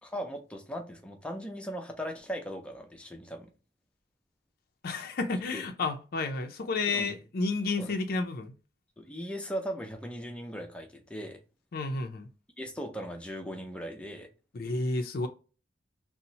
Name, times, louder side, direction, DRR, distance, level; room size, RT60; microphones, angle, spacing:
voice 1, 0.0-3.5 5.5-5.7 6.9-7.1 7.8-7.9 9.0-11.4 12.6-14.3, equal, 5° left, 0.5 m, -38 dB
voice 2, 4.8-8.5 11.7-12.3 14.5-15.3, left 3 dB, 55° left, 0.4 m, -31 dB
2.8 x 2.0 x 3.9 m
head